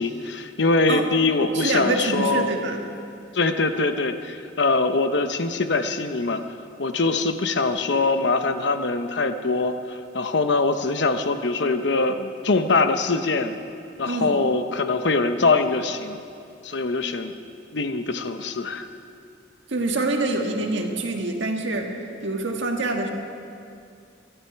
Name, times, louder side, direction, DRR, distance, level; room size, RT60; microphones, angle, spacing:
voice 1, 0.0-2.5 3.3-6.4 6.8-13.5 14.0-16.2 16.6-17.3 17.7-18.9, left 3 dB, 65° left, 8 dB, 0.9 m, -23 dB
voice 2, 1.5-2.8 14.0-14.4 19.7-23.1, right 2 dB, 70° right, 3 dB, 1.6 m, -26 dB
23.0 x 12.5 x 4.7 m, 2.5 s
head